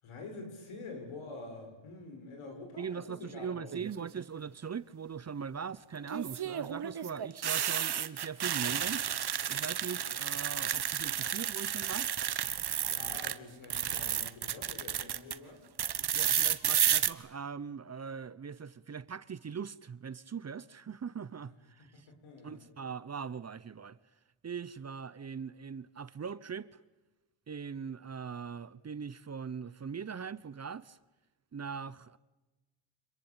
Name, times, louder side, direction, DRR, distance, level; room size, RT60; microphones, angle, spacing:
voice 1, 0.0-3.8 12.9-15.6 21.9-22.6, left 3 dB, 80° left, 7.0 m, -46 dB
voice 2, 2.8-9.1 9.5-12.1 16.1-22.1 22.4-24.0 24.4-26.8 27.5-31.0 31.5-32.2, right 6 dB, 30° right, 0.8 m, -41 dB
sound 1, 3.7-4.2 6.1-13.3 13.6-15.3 15.8-17.1, right 9 dB, 50° right, 1.4 m, -32 dB
27.0 x 21.5 x 8.9 m
cardioid pair, 75°, 49 cm